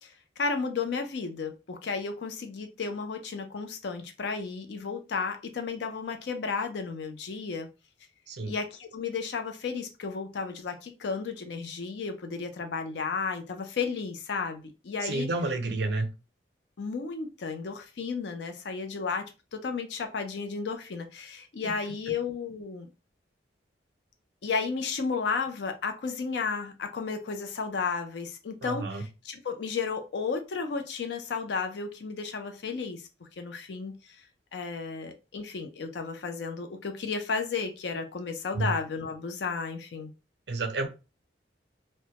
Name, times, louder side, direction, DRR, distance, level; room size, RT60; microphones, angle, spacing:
voice 1, 0.0-7.7 8.5-15.3 16.8-22.9 24.4-33.1 33.4-34.2 34.5-40.1, left 5 dB, 70° left, 0.4 m, -33 dB
voice 2, 15.0-16.1 21.6-21.7 28.6-29.0 38.5-38.7 40.5-40.9, right 2 dB, 60° right, 0.5 m, -30 dB
2.1 x 2.1 x 2.8 m
head